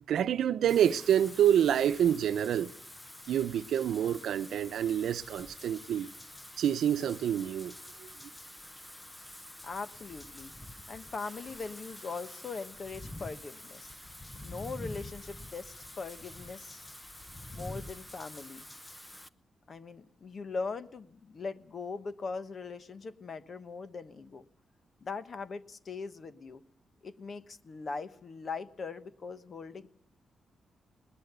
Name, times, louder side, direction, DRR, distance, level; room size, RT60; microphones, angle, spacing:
voice 1, 0.1-2.7 3.3-6.1 6.6-7.7, right 10 dB, 80° right, 0.8 m, -27 dB
Wind / Rain, 0.7-19.3, left 1 dB, 10° left, 0.8 m, -47 dB
voice 2, 9.6-10.5 10.9-14.0 14.4-16.9 17.5-18.7 19.7-24.5 25.0-26.6 27.0-29.9, left 4 dB, 40° left, 1.1 m, -40 dB
20.5 x 20.0 x 6.9 m
wide cardioid pair, 140°, 0 cm